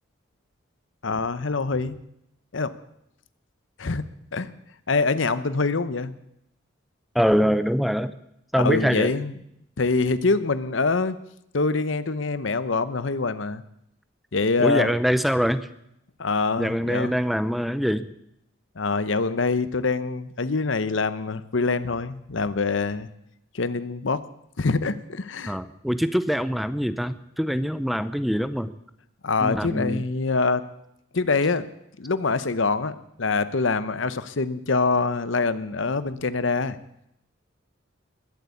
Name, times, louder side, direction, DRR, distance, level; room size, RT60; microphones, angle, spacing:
voice 1, 1.0-2.0 2.5-2.7 3.8-4.0 4.3-4.5 4.9-6.1 8.6-9.3 9.8-11.2 11.5-13.6 14.3-14.9 16.2-17.1 18.8-23.1 23.5-24.2 24.6-25.6 29.2-30.6 31.1-31.7 32.0-36.8, left 3 dB, 70° left, 14 dB, 0.9 m, -25 dB
voice 2, 7.1-8.1 8.5-9.1 14.6-15.7 16.6-18.1 25.5-28.7 29.4-30.0, equal, ahead, 13 dB, 0.6 m, -24 dB
21.0 x 8.2 x 8.4 m, 0.79 s
head